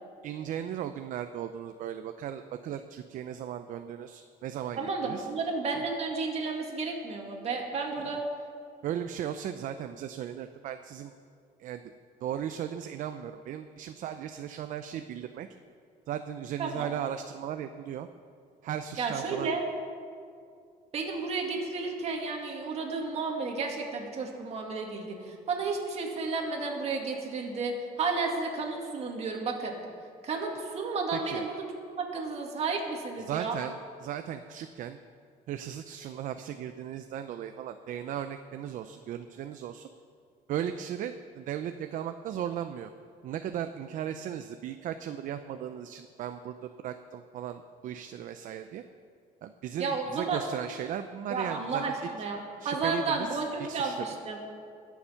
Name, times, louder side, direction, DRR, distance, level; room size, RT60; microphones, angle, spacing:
voice 1, 0.2-5.3 8.0-8.1 8.8-11.1 11.6-11.8 12.2-15.5 16.1-18.1 18.6-19.6 31.1-31.5 33.3-35.0 35.5-39.9 40.5-42.9 43.2-48.8 49.4-52.1 52.6-54.0, right 10 dB, 60° right, 9 dB, 0.5 m, -36 dB
voice 2, 4.8-8.2 16.6-16.9 19.0-19.6 20.9-29.8 30.2-31.6 32.0-33.6 49.8-50.4 51.3-52.4 52.6-54.4, right 4 dB, 45° right, 1 dB, 2.2 m, -32 dB
21.5 x 7.2 x 5.7 m, 2.3 s
cardioid pair, 145°, 16 cm